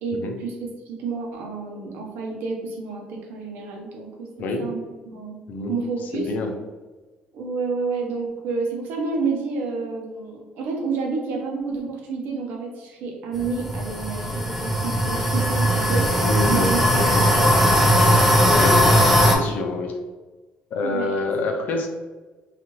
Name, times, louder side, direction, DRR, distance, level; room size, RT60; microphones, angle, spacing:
voice 1, 0.0-4.3 4.6-5.4 5.7-6.3 7.3-16.8 17.1-17.7 18.9-19.0 19.4-19.5 20.8-21.1, right 4 dB, 80° right, 0 dB, 0.7 m, -29 dB
voice 2, 4.4-4.7 5.5-5.8 6.1-6.6 16.2-17.3 18.5-18.9 19.2-20.0 20.7-21.9, left 2 dB, 65° left, 4 dB, 0.5 m, -27 dB
sound 1, 13.4-19.3, equal, 5° right, 0.5 m, -19 dB
2.7 x 2.5 x 2.9 m, 1.3 s
cardioid pair, 105°, 3 cm